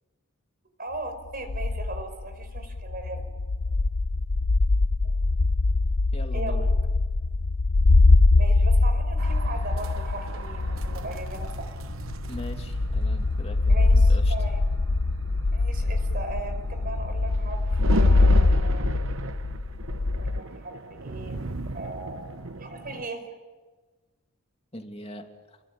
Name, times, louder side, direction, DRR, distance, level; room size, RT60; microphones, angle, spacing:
voice 1, 0.8-3.2 6.3-6.6 8.4-11.7 13.7-14.6 15.5-19.0 20.2-21.4 21.7-22.3 22.6-23.3, right 2 dB, 45° right, 8 dB, 4.9 m, -38 dB
sound 1, 1.3-20.4, left 2 dB, 85° left, 0.8 m, -23 dB
voice 2, 6.1-6.7 12.3-14.3 24.7-25.6, left 1 dB, 30° left, 4 dB, 2.5 m, -41 dB
sound 2, 9.2-23.1, right 2 dB, 65° right, 1.1 m, -37 dB
29.0 x 23.0 x 8.9 m, 1.3 s
head